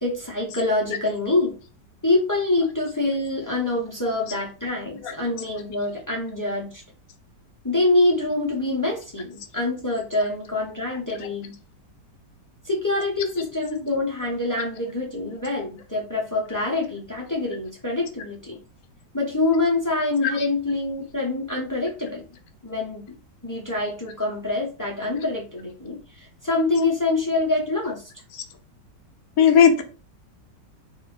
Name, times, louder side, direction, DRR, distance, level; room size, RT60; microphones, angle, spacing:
voice 1, 0.0-1.6 2.0-6.8 7.6-11.5 12.6-18.6 19.1-22.2 22.6-23.1 23.4-28.1, left 2 dB, 15° left, -2 dB, 0.6 m, -25 dB
voice 2, 29.4-29.8, left 7 dB, 65° left, 6 dB, 1.0 m, -16 dB
3.4 x 2.6 x 3.8 m, 0.34 s
omnidirectional pair, 1.9 m